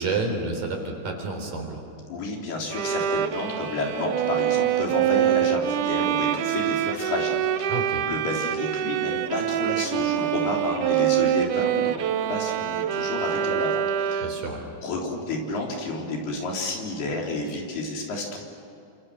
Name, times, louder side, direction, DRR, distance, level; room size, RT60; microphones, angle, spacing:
voice 1, 0.0-1.8 7.7-8.0 14.2-14.6, right 3 dB, 60° right, 2 dB, 5.5 m, -29 dB
voice 2, 2.1-7.8 8.0-14.4 14.8-18.4, left 2 dB, 75° left, -1 dB, 5.7 m, -30 dB
Bowed string instrument, 2.7-14.6, right 11 dB, 80° right, 1.8 m, -25 dB
29.5 x 26.0 x 6.5 m, 2.7 s
omnidirectional pair, 4.6 m